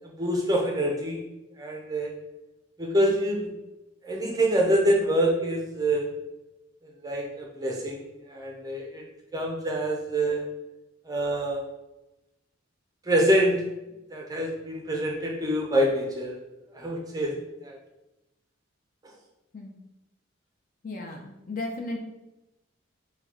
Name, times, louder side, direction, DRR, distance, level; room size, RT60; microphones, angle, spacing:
voice 1, 0.0-1.2 1.6-2.1 2.8-3.5 4.0-6.1 6.8-9.0 9.3-10.4 11.1-11.6 13.1-13.6 14.1-16.4 16.7-17.3 17.6-17.8, right 1 dB, 20° right, 0 dB, 0.6 m, -26 dB
voice 2, 20.8-22.0, left 2 dB, 40° left, 1 dB, 0.6 m, -35 dB
4.5 x 2.3 x 4.2 m, 0.97 s
head